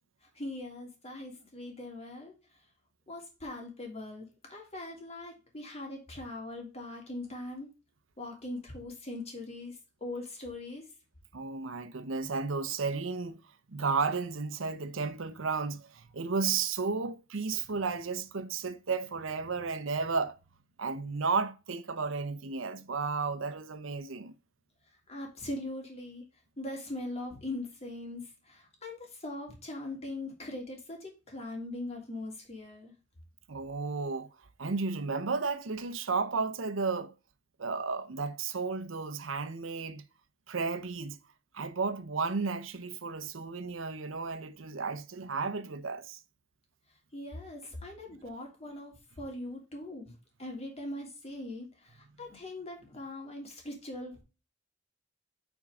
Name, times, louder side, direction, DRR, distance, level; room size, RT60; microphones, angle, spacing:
voice 1, 0.3-2.3 3.1-7.7 8.2-10.9 25.1-26.3 26.6-32.9 47.1-50.1 50.4-54.2, left 2 dB, 30° left, 2.9 m, -41 dB
voice 2, 11.3-13.4 13.7-20.4 20.8-24.3 33.5-34.3 34.6-37.1 37.6-40.0 40.5-41.2 41.5-46.2, right 4 dB, 75° right, 0.8 m, -33 dB
8.9 x 4.6 x 3.7 m
head